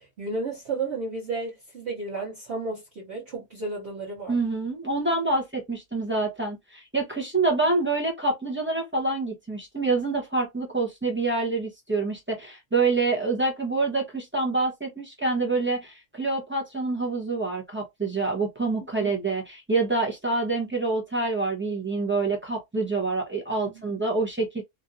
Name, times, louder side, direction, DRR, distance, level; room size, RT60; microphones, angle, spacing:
voice 1, 0.0-4.4 19.0-19.1, right 3 dB, 45° right, 1.2 m, -33 dB
voice 2, 4.3-24.6, right 3 dB, 10° right, 0.7 m, -26 dB
3.1 x 2.5 x 2.6 m
omnidirectional pair, 1.7 m